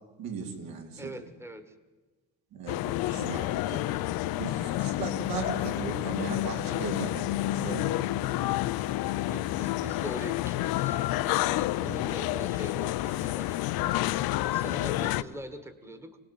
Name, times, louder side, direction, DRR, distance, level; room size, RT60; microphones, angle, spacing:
voice 1, 0.2-1.1 2.5-3.9 4.3-8.6 11.9-12.0, right 5 dB, 75° right, 3 dB, 4.3 m, -38 dB
voice 2, 1.0-1.7 4.2-4.5 9.2-13.8 14.4-16.2, right 1 dB, 5° right, 11 dB, 1.5 m, -43 dB
sound 1, 2.7-15.2, left 16 dB, 90° left, 0.9 m, -29 dB
28.0 x 19.5 x 9.0 m, 1.3 s
cardioid pair, 175°, 35 cm